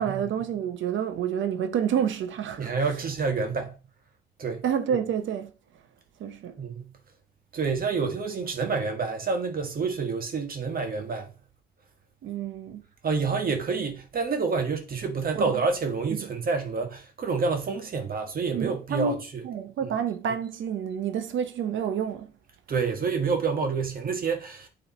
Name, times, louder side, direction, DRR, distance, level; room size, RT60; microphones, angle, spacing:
voice 1, 0.0-2.7 4.6-5.5 6.2-6.6 12.2-12.8 15.3-15.6 16.2-16.3 18.5-22.3, right 8 dB, 75° right, 0.8 m, -29 dB
voice 2, 2.6-3.7 4.4-4.6 6.6-6.9 7.5-11.3 13.0-19.4 22.7-24.7, right 4 dB, 45° right, 1.5 m, -28 dB
8.8 x 3.2 x 4.1 m
cardioid pair, 90°, 20 cm